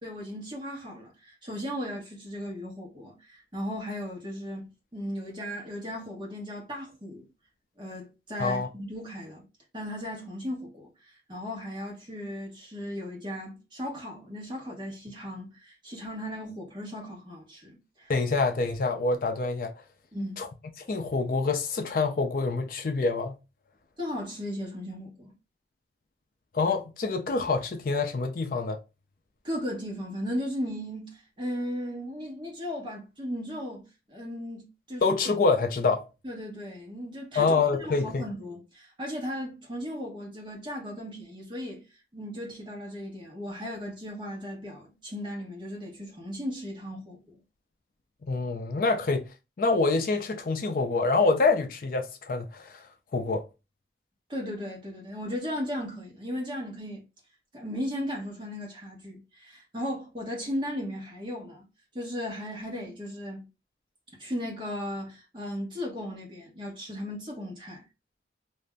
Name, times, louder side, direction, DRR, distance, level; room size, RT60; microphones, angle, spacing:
voice 1, 0.0-7.3 7.8-9.5 9.7-18.1 20.1-20.4 24.0-25.3 29.4-35.1 36.2-37.5 37.8-41.9 42.1-47.4 54.3-57.0 57.5-61.7 61.9-63.5 64.2-67.8, equal, 25° right, 0.9 m, -36 dB
voice 2, 18.1-19.7 20.4-20.5 20.9-23.4 26.5-28.8 35.0-36.1 37.3-38.2 48.3-49.3 49.6-52.8 53.1-53.4, left 3 dB, 50° left, 0.4 m, -26 dB
2.5 x 2.0 x 3.3 m
head